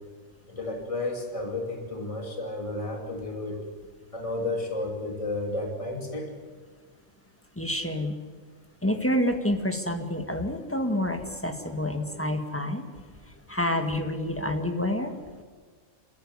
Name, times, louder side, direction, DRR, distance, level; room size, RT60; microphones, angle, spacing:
voice 1, 0.5-3.6 4.1-6.3, left 2 dB, 25° left, 2 dB, 2.9 m, -32 dB
voice 2, 7.6-8.1 8.8-12.8 13.5-15.1, left 1 dB, 10° left, 5 dB, 1.8 m, -28 dB
27.0 x 14.0 x 9.8 m, 1.5 s
omnidirectional pair, 1.3 m